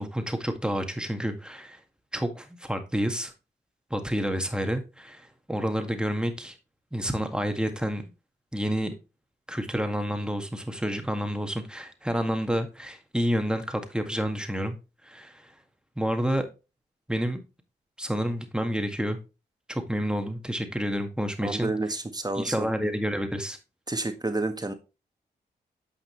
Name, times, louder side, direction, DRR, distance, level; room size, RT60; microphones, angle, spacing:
voice 1, 0.0-1.8 2.1-3.3 3.9-6.5 6.9-8.0 8.5-8.9 9.5-14.8 15.0-15.5 16.0-16.5 17.1-17.4 18.0-19.2 19.7-21.7 22.4-23.6, equal, 5° right, 1.9 m, -29 dB
voice 2, 21.4-22.7 23.9-24.7, right 2 dB, 20° right, 1.6 m, -30 dB
8.9 x 5.8 x 3.3 m
supercardioid pair, 40°, 18 cm